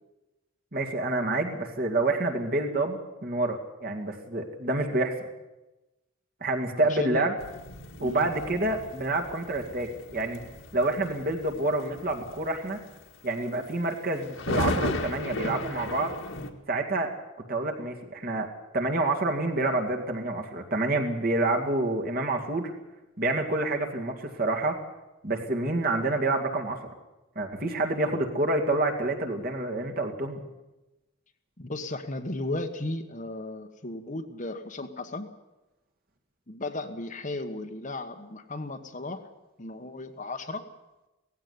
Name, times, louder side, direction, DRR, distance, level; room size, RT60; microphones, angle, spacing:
voice 1, 0.7-5.1 6.4-7.3 8.0-10.4 10.7-12.8 13.2-16.1 16.7-17.1 17.5-22.7 23.2-24.8 25.2-26.8 27.4-30.4, right 2 dB, 45° right, 3 dB, 2.2 m, -28 dB
voice 2, 6.8-7.3 8.0-8.3 31.6-35.3 36.5-39.2 39.6-40.7, left 2 dB, 35° left, 7 dB, 1.2 m, -35 dB
sound 1, 7.4-16.5, left 2 dB, 65° left, 2.0 m, -35 dB
17.5 x 15.5 x 9.6 m, 1.0 s
head